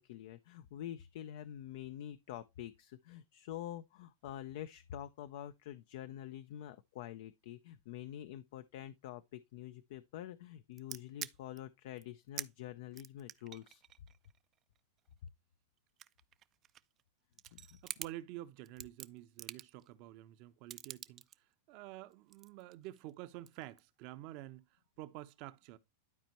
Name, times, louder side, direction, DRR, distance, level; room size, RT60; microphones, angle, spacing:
voice 1, 0.0-13.8 17.5-17.7, left 11 dB, 65° left, 0.5 m, -47 dB
sound 1, 10.8-11.6 12.0-12.1 12.4-12.5 12.9-15.3 15.8-17.0 17.3-18.1 18.6-19.9 20.7-21.4 22.1-23.1 23.5-23.8, right 11 dB, 35° right, 0.4 m, -47 dB
voice 2, 17.6-21.2 21.7-25.8, right 15 dB, 50° right, 0.8 m, -49 dB
12.0 x 4.4 x 2.9 m
hypercardioid pair, 120°, 0 cm